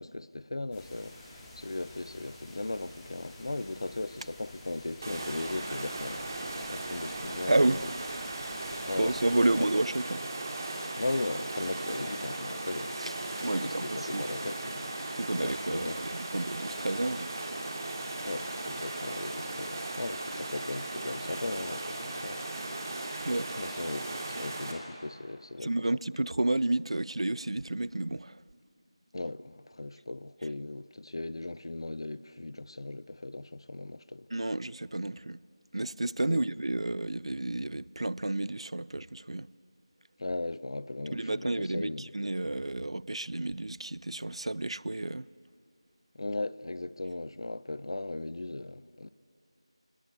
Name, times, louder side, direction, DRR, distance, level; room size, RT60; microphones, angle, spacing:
voice 1, 0.0-6.2 6.6-7.9 8.8-9.7 11.0-13.1 13.3-14.8 15.4-16.0 18.2-22.4 23.5-25.7 29.1-34.3 36.3-36.5 40.2-42.1 46.1-49.1, left 2 dB, 55° left, 0.6 m, -37 dB
sound 1, 0.7-9.7, left 1 dB, 10° left, 2.1 m, -50 dB
sound 2, 5.0-24.7, right 2 dB, 35° right, 3.0 m, -37 dB
voice 2, 7.5-7.8 9.0-10.2 13.0-13.1 13.4-14.3 15.2-17.5 23.2-23.5 25.6-28.4 34.3-35.4 35.7-39.5 41.1-45.3, right 2 dB, 70° right, 0.5 m, -30 dB
27.0 x 20.0 x 8.3 m
figure-of-eight pair, 170°, 3 cm